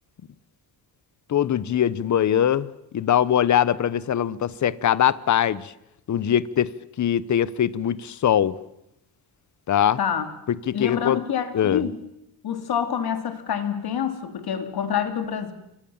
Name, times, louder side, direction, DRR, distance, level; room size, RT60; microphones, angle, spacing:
voice 1, 1.3-2.7 2.9-5.7 6.1-6.7 7.0-8.6 9.7-10.0 10.5-11.2 11.5-11.8, left 10 dB, 40° left, 1.0 m, -22 dB
voice 2, 10.0-10.3 10.7-12.0 12.4-15.5, left 8 dB, 60° left, 3.3 m, -27 dB
29.0 x 25.0 x 7.2 m
cardioid pair, 145°, 43 cm